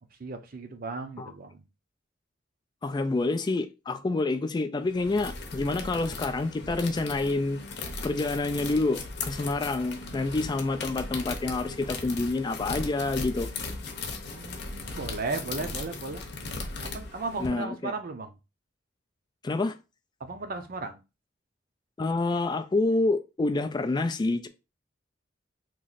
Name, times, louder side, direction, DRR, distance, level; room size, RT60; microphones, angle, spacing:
voice 1, 0.2-1.6 14.3-16.3 16.8-18.3 20.2-21.0, right 3 dB, 50° right, 0.6 m, -35 dB
voice 2, 2.8-7.6 8.0-13.5 17.4-17.9 19.4-19.8 22.0-24.5, left 2 dB, 25° left, 0.3 m, -28 dB
sound 1, 4.8-17.5, left 3 dB, 60° left, 0.8 m, -37 dB
3.0 x 2.5 x 3.9 m
head